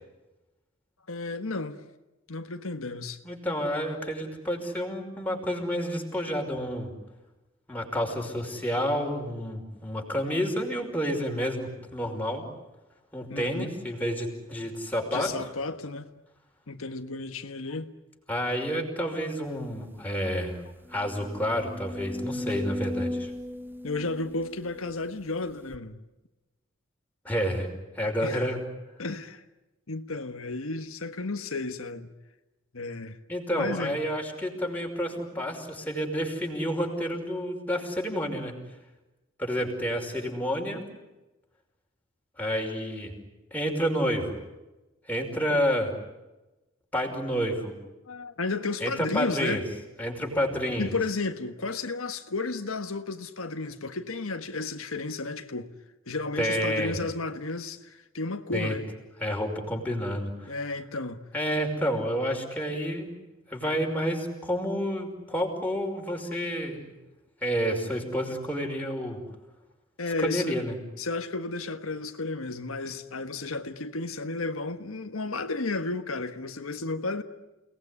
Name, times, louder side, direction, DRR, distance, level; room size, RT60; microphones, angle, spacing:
voice 1, 1.1-1.8 2.3-3.2 13.3-13.7 15.1-16.1 16.7-17.9 23.8-26.0 28.2-28.4 29.0-29.4 29.9-32.1 32.7-33.2 33.6-34.0 48.1-49.6 50.8-55.7 56.1-58.8 60.5-61.2 70.0-70.6 71.0-77.2, left 3 dB, 85° left, 1.4 m, -33 dB
voice 2, 3.2-6.9 7.7-12.4 13.1-15.3 18.3-20.6 20.9-23.3 27.2-28.6 33.3-38.5 39.4-40.9 42.4-43.1 43.5-44.4 45.1-45.9 46.9-47.7 48.8-49.6 50.0-50.9 56.4-56.9 58.5-58.7 59.2-60.5 61.3-63.1 63.5-66.9 67.4-69.2 70.2-70.7, equal, 10° left, 5.5 m, -29 dB
sound 1, 19.7-19.8 20.2-20.3 20.8-25.1 25.7-25.8, left 1 dB, 10° right, 0.9 m, -36 dB
30.0 x 19.5 x 9.9 m
head